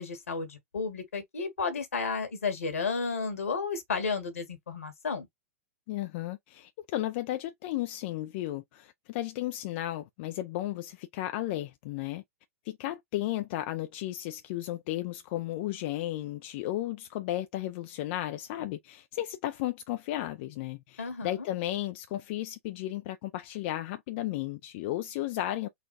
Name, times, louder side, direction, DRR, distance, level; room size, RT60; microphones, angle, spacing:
voice 1, 0.0-5.3 21.0-21.4, left 4 dB, 75° left, 1.7 m, -32 dB
voice 2, 5.9-12.2 12.6-25.7, left 14 dB, 50° left, 0.5 m, -34 dB
4.1 x 2.3 x 4.2 m
hypercardioid pair, 105°, 8 cm